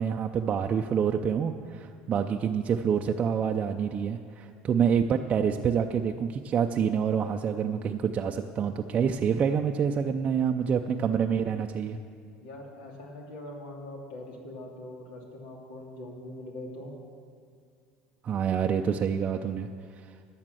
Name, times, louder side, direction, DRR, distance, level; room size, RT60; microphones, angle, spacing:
voice 1, 0.0-12.0 18.2-20.1, right 7 dB, 35° right, 3 dB, 0.5 m, -27 dB
voice 2, 12.4-16.9, left 1 dB, 85° left, 0 dB, 2.4 m, -42 dB
12.0 x 7.3 x 7.7 m, 2.3 s
supercardioid pair, 110°, 4 cm